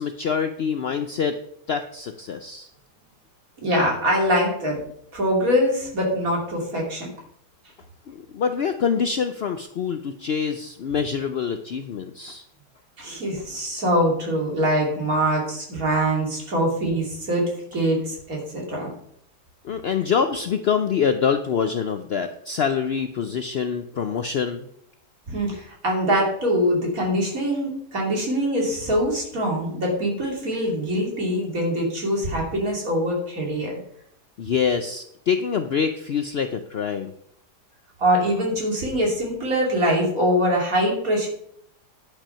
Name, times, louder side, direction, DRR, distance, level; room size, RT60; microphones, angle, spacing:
voice 1, 0.0-1.4 1.7-2.7 8.1-12.4 19.6-24.7 34.4-37.1, left 6 dB, 90° left, 8 dB, 0.5 m, -25 dB
voice 2, 3.6-4.8 5.1-7.1 13.0-17.4 17.7-18.9 25.3-33.8 38.0-41.3, equal, 55° right, -1 dB, 3.2 m, -23 dB
10.5 x 6.0 x 5.6 m, 0.70 s
omnidirectional pair, 1.8 m